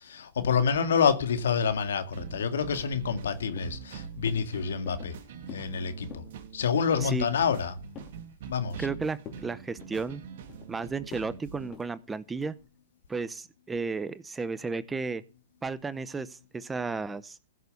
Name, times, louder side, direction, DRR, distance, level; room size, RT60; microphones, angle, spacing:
voice 1, 0.0-5.1 5.5-6.2 6.5-7.8 8.5-8.9, left 6 dB, 80° left, 2.1 m, -27 dB
sound 1, 2.1-11.7, right 7 dB, 60° right, 2.6 m, -44 dB
sound 2, 3.6-3.9 4.3-4.5 4.9-5.2 5.5-5.7 6.0-6.3 6.7-7.0 7.3-8.2 8.6-8.9 9.2-9.5 9.8-10.7 11.1-11.3 11.7-11.9 12.4-12.7, left 8 dB, 30° left, 3.4 m, -47 dB
voice 2, 8.8-10.2 10.7-12.5 13.1-15.2 15.6-17.4, right 4 dB, 10° right, 0.8 m, -33 dB
15.5 x 6.8 x 6.9 m
hypercardioid pair, 125°, 0 cm